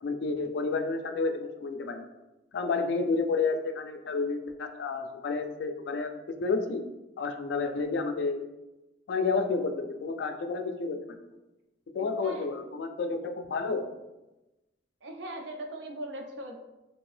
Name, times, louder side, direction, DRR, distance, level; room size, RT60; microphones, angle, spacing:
voice 1, 0.0-2.0 2.5-6.1 6.4-6.8 7.2-8.4 9.1-11.1 11.9-13.8, left 4 dB, 70° left, 6 dB, 0.3 m, -30 dB
voice 2, 12.0-12.5 15.0-16.6, right 1 dB, 85° right, 3 dB, 0.5 m, -40 dB
2.8 x 2.6 x 3.2 m, 1.0 s
head